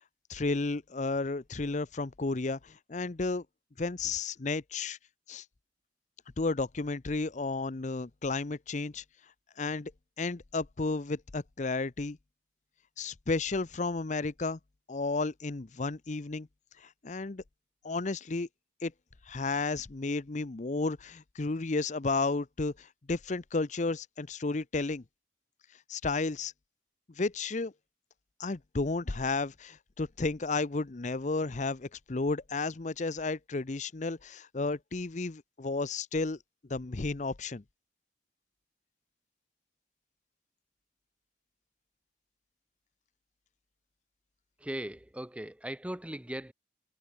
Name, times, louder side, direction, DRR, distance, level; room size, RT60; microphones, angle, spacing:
voice 1, 0.3-3.4 3.8-5.0 5.3-5.4 6.4-9.0 9.6-9.9 10.2-12.2 13.0-14.6 14.9-16.5 16.8-17.4 17.8-18.5 18.8-18.9 19.3-25.0 25.9-26.5 27.2-27.7 28.4-36.4 36.7-37.6, left 3 dB, 40° left, 0.7 m, -32 dB
voice 2, 44.6-46.5, right 1 dB, 5° right, 0.6 m, -38 dB
head